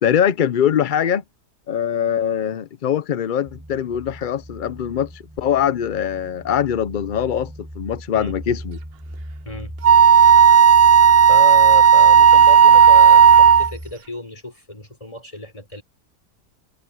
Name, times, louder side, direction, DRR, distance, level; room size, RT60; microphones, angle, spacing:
voice 1, 0.0-1.2 1.7-8.8, left 9 dB, 70° left, 0.4 m, -22 dB
sound 1, 3.4-13.9, equal, 5° right, 2.1 m, -38 dB
Wind instrument woodwind instrument, 9.8-13.7, right 7 dB, 55° right, 0.7 m, -10 dB
voice 2, 11.3-15.8, equal, 20° left, 5.0 m, -33 dB
omnidirectional pair, 1.6 m